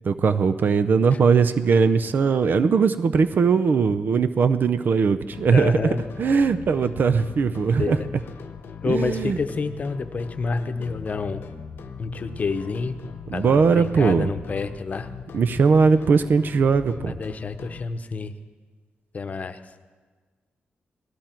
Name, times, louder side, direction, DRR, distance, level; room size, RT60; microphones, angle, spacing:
voice 1, 0.1-5.8 6.2-8.0 8.8-9.4 13.3-14.3 15.3-17.1, right 5 dB, 60° right, 11 dB, 0.5 m, -20 dB
sound 1, 5.3-17.8, left 6 dB, 80° left, 0.9 m, -40 dB
voice 2, 5.5-6.0 7.8-8.1 8.8-11.4 12.0-13.0 13.3-15.1 17.1-18.3 19.1-19.6, left 4 dB, 45° left, 9 dB, 0.8 m, -28 dB
18.0 x 14.0 x 4.5 m, 1.4 s
wide cardioid pair, 115°, 4 cm